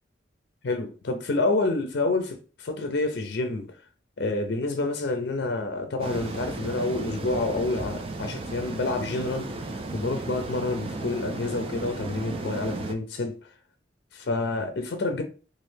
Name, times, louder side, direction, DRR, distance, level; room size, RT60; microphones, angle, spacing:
voice 1, 0.6-3.8 4.2-9.6 9.9-13.4 14.1-15.2, left 2 dB, 60° left, 0.5 m, -28 dB
sound 1, 6.0-12.9, right 2 dB, 30° right, 0.3 m, -35 dB
3.0 x 2.5 x 3.2 m
head